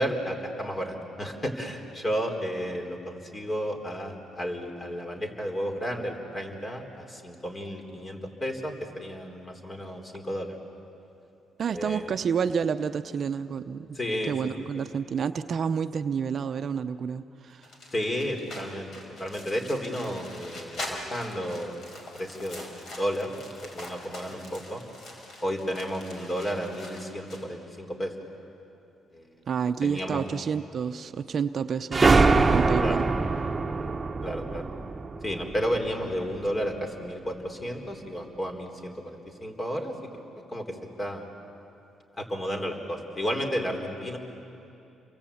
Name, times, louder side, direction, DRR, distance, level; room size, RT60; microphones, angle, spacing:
voice 1, 0.0-10.6 11.7-12.0 13.9-14.3 17.9-18.9 19.2-24.8 25.4-28.1 29.1-29.3 29.8-30.3 32.8-33.1 34.2-34.6 35.2-39.9 40.5-41.3 42.2-44.2, equal, 30° left, 3 dB, 3.8 m, -32 dB
voice 2, 11.6-14.0 14.3-17.7 29.5-32.1 32.5-33.1, right 6 dB, 55° right, 10 dB, 0.8 m, -29 dB
sound 1, 17.6-27.4, left 1 dB, 55° left, 5.0 m, -43 dB
sound 2, 31.9-36.4, right 3 dB, 25° right, 1.3 m, -23 dB
28.5 x 23.5 x 8.6 m, 2.8 s
cardioid pair, 90°, 0 cm